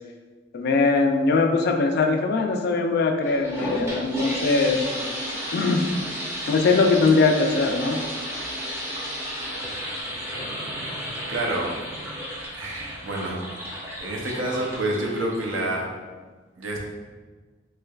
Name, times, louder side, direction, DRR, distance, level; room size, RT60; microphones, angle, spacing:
voice 1, 0.5-5.2 5.5-5.8 6.5-8.0, left 3 dB, 55° left, 4 dB, 0.3 m, -21 dB
sound 1, 3.2-15.7, equal, 15° right, 0.6 m, -33 dB
voice 2, 11.3-11.7 12.5-13.4 13.7-15.9 16.6-16.9, right 1 dB, 85° right, -1 dB, 0.6 m, -28 dB
3.2 x 3.1 x 2.3 m, 1.4 s
head